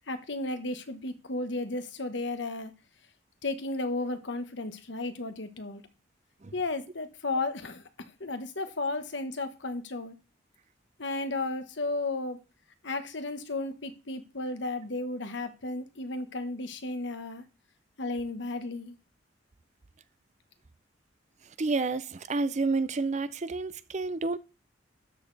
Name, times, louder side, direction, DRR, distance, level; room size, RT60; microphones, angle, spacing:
voice 1, 0.1-2.7 3.4-5.8 6.5-7.8 8.2-10.1 11.0-12.4 12.8-17.4 18.0-18.9, left 2 dB, 70° left, 1.3 m, -34 dB
voice 2, 21.6-24.4, right 3 dB, 35° right, 0.5 m, -29 dB
12.5 x 6.6 x 4.0 m
head